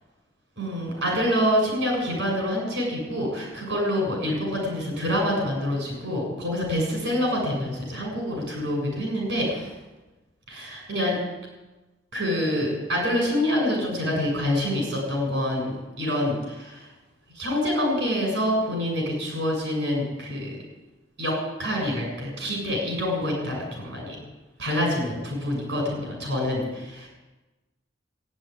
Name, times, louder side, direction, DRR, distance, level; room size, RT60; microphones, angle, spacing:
voice 1, 0.6-9.7 10.5-11.1 12.1-16.9 17.4-20.6 21.2-21.3 21.6-24.2 24.6-27.1, left 1 dB, 85° right, 0 dB, 7.2 m, -26 dB
15.0 x 9.0 x 9.8 m, 1.1 s
head